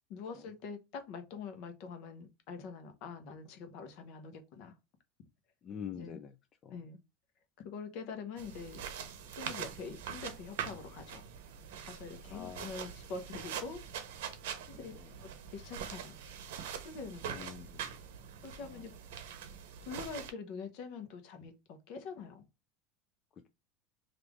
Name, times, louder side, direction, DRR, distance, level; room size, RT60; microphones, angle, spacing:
voice 1, 0.1-4.7 6.0-6.2 6.7-7.0 7.6-8.8 9.2-11.2 11.8-13.8 14.7-14.9 15.2-16.1 16.8-17.5 18.4-18.9 19.9-22.5, left 5 dB, 55° left, 0.8 m, -45 dB
voice 2, 5.6-6.3 6.6-6.8 12.3-12.7 14.7-15.1 17.3-18.0 18.6-18.8, left 8 dB, 30° left, 0.3 m, -46 dB
sound 1, 8.4-20.3, right 8 dB, 85° right, 0.7 m, -43 dB
3.3 x 2.5 x 3.4 m
supercardioid pair, 145°, 0 cm